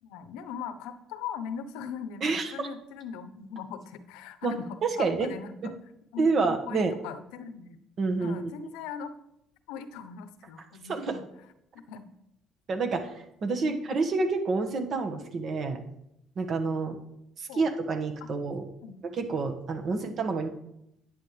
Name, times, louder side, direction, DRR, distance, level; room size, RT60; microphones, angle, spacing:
voice 1, 0.0-5.7 6.1-7.8 8.2-9.1 9.7-11.2 11.8-12.1 13.7-13.8 17.5-17.6 18.8-19.0 19.9-20.1, left 7 dB, 85° left, 11 dB, 0.8 m, -40 dB
voice 2, 2.2-2.5 4.4-4.5 5.0-5.3 6.2-6.9 8.0-8.5 10.9-11.1 12.7-13.1 13.4-15.8 16.4-17.0 17.4-18.6 19.1-20.5, right 3 dB, 50° right, 5 dB, 1.5 m, -28 dB
10.5 x 9.3 x 3.3 m, 0.79 s
supercardioid pair, 85°, 0 cm